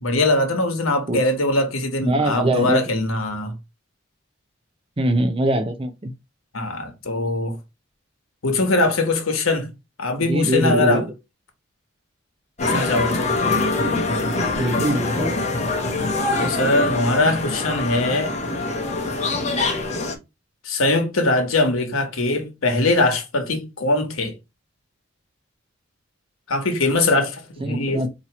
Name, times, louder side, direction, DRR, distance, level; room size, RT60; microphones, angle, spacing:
voice 1, 0.0-3.5 6.5-7.6 8.4-9.7 10.0-11.0 12.6-13.3 16.4-18.3 20.6-24.3 26.5-28.0, left 2 dB, 90° left, 1.1 m, -21 dB
voice 2, 2.0-2.8 5.0-6.1 10.3-11.1 14.6-15.4 27.6-28.1, right 1 dB, 25° right, 0.5 m, -22 dB
sound 1, 12.6-20.2, left 3 dB, 35° left, 0.7 m, -24 dB
4.3 x 2.8 x 2.9 m
head